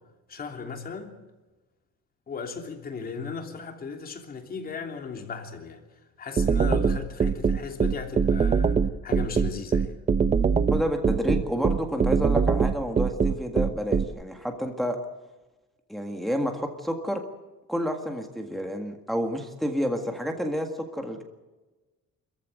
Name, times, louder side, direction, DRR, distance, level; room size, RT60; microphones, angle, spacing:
voice 1, 0.3-1.2 2.3-5.8 6.2-9.9, left 5 dB, 30° left, 4 dB, 3.1 m, -36 dB
sound 1, 6.4-14.0, right 6 dB, 25° right, 0.8 m, -22 dB
voice 2, 10.7-15.0 15.9-17.2 17.7-21.2, equal, ahead, 3 dB, 1.8 m, -29 dB
26.5 x 14.5 x 9.3 m, 1.2 s
cardioid pair, 175°, 29 cm